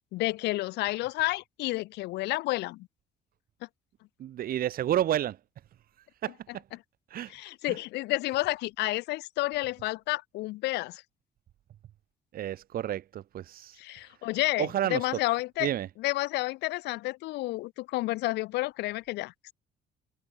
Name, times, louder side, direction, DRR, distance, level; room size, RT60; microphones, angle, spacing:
voice 1, 0.1-2.9 6.7-6.8 7.3-11.0 13.8-15.7 16.0-19.5, left 19 dB, 85° left, 1.6 m, -30 dB
voice 2, 4.2-5.4 6.2-6.4 7.1-7.3 7.7-7.8 12.3-13.8 14.6-15.1 15.6-15.9, right 11 dB, 60° right, 2.7 m, -30 dB
cardioid pair, 110°, 17 cm